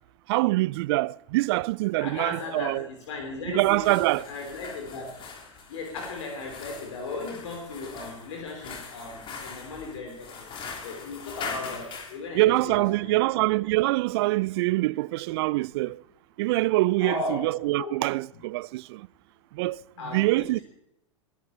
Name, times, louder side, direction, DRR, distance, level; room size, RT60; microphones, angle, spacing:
voice 1, 0.3-2.9 3.5-4.3 12.3-16.0 16.4-19.1 19.5-19.8 20.0-20.6, right 20 dB, 50° right, 0.4 m, -24 dB
voice 2, 2.0-5.2 5.7-10.5 10.8-13.2 17.0-17.5 17.8-18.0 20.0-20.6, left 3 dB, 60° left, 3.2 m, -36 dB
sound 1, 3.6-12.2, left 5 dB, 30° left, 3.6 m, -41 dB
21.0 x 11.0 x 4.4 m
figure-of-eight pair, 95°, 17 cm